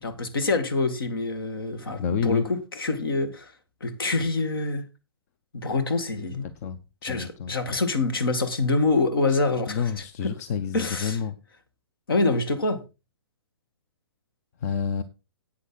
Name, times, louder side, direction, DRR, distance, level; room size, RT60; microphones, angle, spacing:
voice 1, 0.0-3.5 3.8-4.8 5.5-6.4 7.0-9.8 10.2-10.3 10.7-11.2 12.1-12.8, left 3 dB, 60° left, 2.2 m, -25 dB
voice 2, 2.0-2.4 6.4-6.8 7.1-7.5 9.3-9.4 9.7-11.4 14.6-15.0, left 6 dB, 40° left, 0.7 m, -29 dB
11.0 x 8.6 x 4.0 m
figure-of-eight pair, 125°, 13 cm